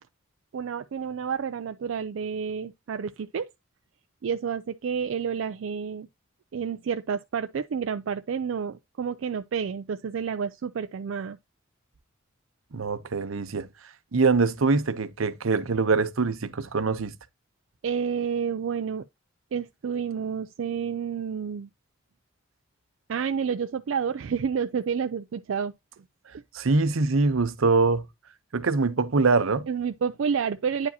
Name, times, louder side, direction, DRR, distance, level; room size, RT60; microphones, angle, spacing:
voice 1, 0.5-3.5 4.2-6.1 6.5-11.4 17.8-19.0 19.5-21.7 23.1-25.7 29.7-30.9, right 6 dB, 70° right, 0.4 m, -29 dB
voice 2, 12.7-13.7 14.1-17.1 26.5-28.0 28.5-29.7, right 4 dB, 85° right, 0.7 m, -23 dB
9.5 x 4.7 x 2.8 m
head